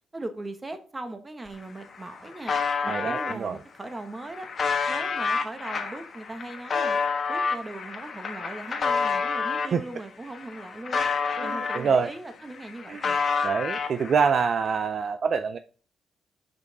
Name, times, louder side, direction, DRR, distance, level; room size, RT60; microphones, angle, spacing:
voice 1, 0.1-4.5 4.9-7.0 7.3-11.1 11.4-13.2, right 2 dB, 20° right, 1.1 m, -39 dB
sound 1, 1.5-1.6 1.8-3.3 4.0-9.8 10.2-12.2 12.4-14.3, left 5 dB, 45° left, 1.2 m, -29 dB
voice 2, 2.9-3.6 9.7-9.8 11.4-12.1 12.9-13.0 13.4-15.6, right 6 dB, 50° right, 0.4 m, -25 dB
6.2 x 5.3 x 4.0 m
cardioid pair, 90°, 0 cm